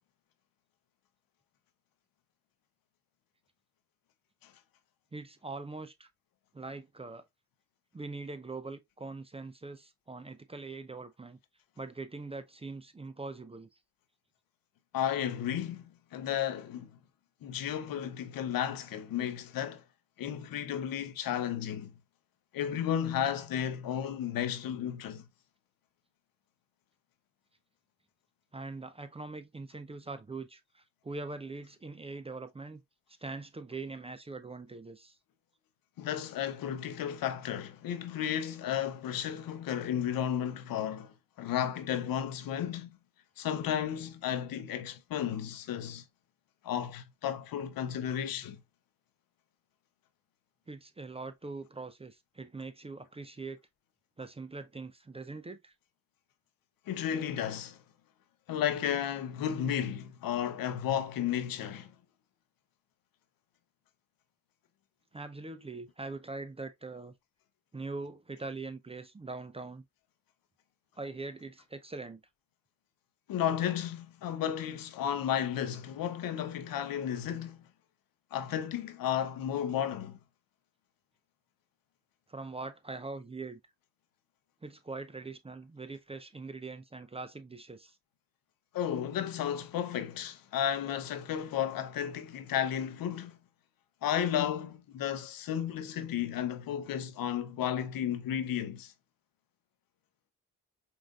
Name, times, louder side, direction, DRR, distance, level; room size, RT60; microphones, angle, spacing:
voice 1, 5.1-6.1 6.5-7.2 7.9-11.4 11.8-13.7 28.5-32.8 33.2-35.2 50.7-53.6 54.2-55.7 65.1-67.1 67.7-69.8 71.0-72.2 82.3-83.6 84.6-88.0, right 3 dB, 15° right, 0.5 m, -42 dB
voice 2, 14.9-16.9 17.4-19.8 20.2-21.9 22.5-25.2 36.0-42.9 43.4-46.0 46.6-48.6 56.9-57.8 58.5-61.9 73.3-77.6 78.3-80.2 88.7-93.4 94.0-98.9, left 9 dB, 70° left, 0.7 m, -33 dB
5.2 x 2.6 x 2.4 m
hypercardioid pair, 50°, 36 cm